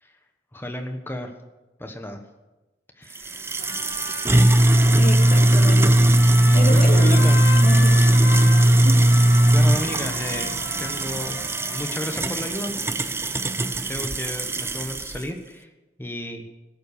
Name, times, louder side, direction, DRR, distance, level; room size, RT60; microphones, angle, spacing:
voice 1, 0.5-1.3 1.8-2.2 3.0-3.5 4.0-4.1 6.6-7.4 9.5-11.4 11.7-12.7 13.9-15.7 16.0-16.4, equal, 15° left, 5 dB, 1.3 m, -32 dB
sound 1, 3.2-15.2, right 1 dB, 15° right, 0.6 m, -18 dB
Trumpet, 3.6-12.1, left 5 dB, 75° left, 1.3 m, -36 dB
sound 2, 4.4-11.6, right 1 dB, 50° right, 1.7 m, -42 dB
voice 2, 4.9-7.3 7.6-7.9 8.8-9.0, left 1 dB, 45° left, 2 dB, 2.2 m, -29 dB
17.5 x 7.7 x 6.8 m, 1.0 s
head